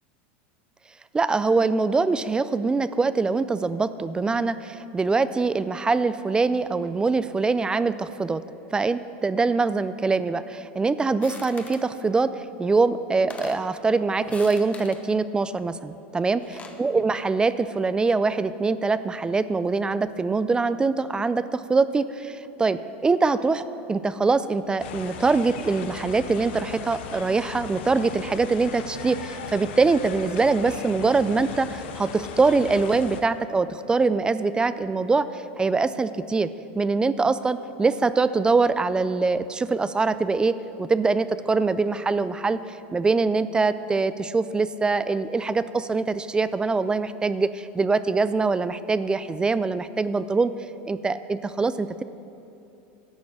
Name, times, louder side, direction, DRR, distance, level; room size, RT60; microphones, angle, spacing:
voice 1, 1.1-8.4 8.7-36.5 36.8-42.6 42.9-50.5 50.9-52.0, right 4 dB, 15° right, 14 dB, 0.3 m, -23 dB
sound 1, 11.2-11.9 12.8-12.9 13.1-13.7 14.2-15.0 16.2-16.8, left 4 dB, 20° left, 1.0 m, -42 dB
sound 2, 24.8-33.2, left 7 dB, 75° left, 0.8 m, -38 dB
11.0 x 6.3 x 7.1 m, 3.0 s
hypercardioid pair, 110°, 6 cm